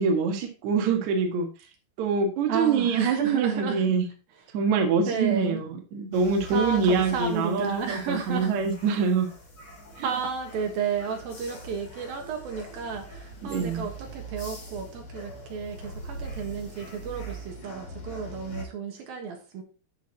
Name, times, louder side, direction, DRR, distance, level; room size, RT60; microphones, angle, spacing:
voice 1, 0.0-1.5 2.0-4.0 4.5-9.3 10.0-10.1 13.4-13.8, right 5 dB, 55° right, 2 dB, 2.5 m, -25 dB
voice 2, 2.5-3.8 5.1-5.6 6.5-8.5 10.0-19.6, right 6 dB, 70° right, 2 dB, 3.1 m, -32 dB
sound 1, 6.1-18.6, right 1 dB, 35° left, 3.7 m, -42 dB
12.5 x 6.2 x 2.9 m, 0.35 s
omnidirectional pair, 4.5 m